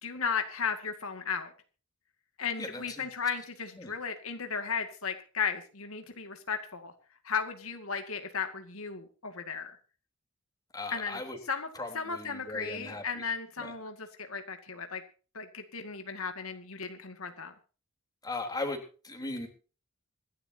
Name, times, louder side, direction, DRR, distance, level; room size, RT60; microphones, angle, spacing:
voice 1, 0.0-1.5 2.4-6.9 7.2-9.7 10.9-11.2 11.5-11.7 11.9-15.0 15.3-17.5, left 6 dB, 70° left, 6 dB, 2.2 m, -35 dB
voice 2, 10.7-11.4 11.8-13.0 13.6-13.7 18.2-19.5, left 2 dB, 20° left, 3 dB, 3.7 m, -37 dB
26.5 x 12.0 x 2.9 m, 0.37 s
head